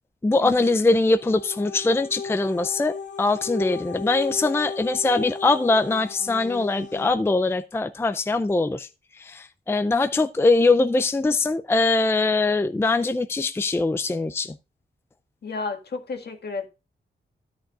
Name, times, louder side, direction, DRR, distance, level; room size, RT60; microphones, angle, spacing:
voice 1, 0.2-8.9 9.2-14.5, left 3 dB, 15° left, 0.4 m, -22 dB
sound 1, 1.0-7.1, left 5 dB, 80° left, 1.9 m, -36 dB
voice 2, 15.4-16.7, left 4 dB, 60° left, 1.7 m, -32 dB
13.0 x 9.0 x 2.4 m
wide cardioid pair, 115°, 19 cm